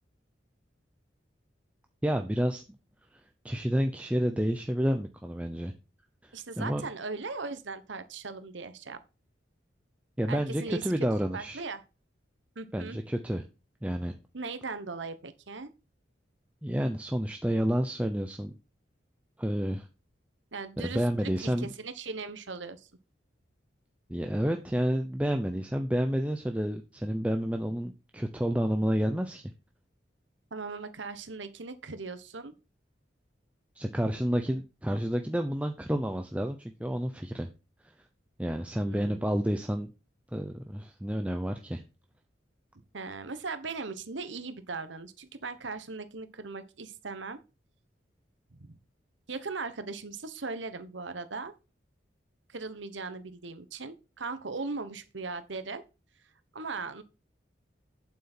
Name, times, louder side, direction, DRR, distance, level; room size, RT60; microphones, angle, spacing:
voice 1, 2.0-2.6 3.1-5.7 6.2-6.8 10.2-11.6 12.7-13.4 13.8-14.1 16.6-18.5 19.4-19.9 20.8-21.7 24.1-29.4 33.8-37.5 38.4-39.9 40.3-41.8, equal, 5° right, 5 dB, 0.6 m, -30 dB
voice 2, 6.3-9.0 10.3-11.1 11.3-11.8 12.5-13.0 14.3-15.7 20.5-22.9 30.5-32.5 34.5-34.6 38.8-39.2 42.9-47.4 48.5-48.8 49.3-51.5 52.5-55.8 56.5-57.0, right 4 dB, 80° right, 11 dB, 1.1 m, -38 dB
8.5 x 7.7 x 4.4 m, 0.31 s
head